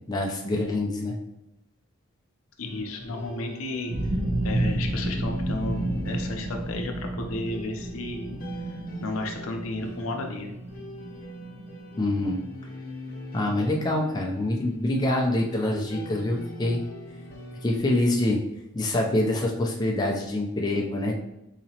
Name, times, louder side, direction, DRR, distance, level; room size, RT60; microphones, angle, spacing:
voice 1, 0.1-1.2 12.0-12.4 13.3-16.8 17.6-18.4 18.7-21.2, left 1 dB, 20° left, -1 dB, 0.4 m, -25 dB
voice 2, 2.6-3.9 4.4-8.4 9.0-10.5, left 2 dB, 80° left, 3 dB, 0.6 m, -33 dB
sound 1, 2.6-17.8, left 1 dB, 45° left, 0.9 m, -42 dB
sound 2, 3.9-12.3, right 1 dB, 80° right, 0.8 m, -31 dB
4.1 x 2.8 x 2.8 m, 0.87 s
head